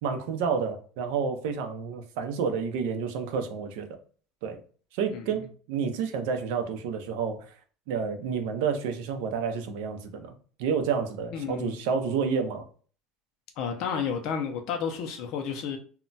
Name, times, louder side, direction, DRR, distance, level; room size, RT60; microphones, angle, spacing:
voice 1, 0.0-3.9 4.4-4.6 4.9-7.5 7.9-10.3 10.6-12.7, right 6 dB, 65° right, 0.5 m, -29 dB
voice 2, 11.3-11.8 13.6-15.8, left 7 dB, 45° left, 0.4 m, -31 dB
2.1 x 2.1 x 3.8 m
cardioid pair, 175°, 0 cm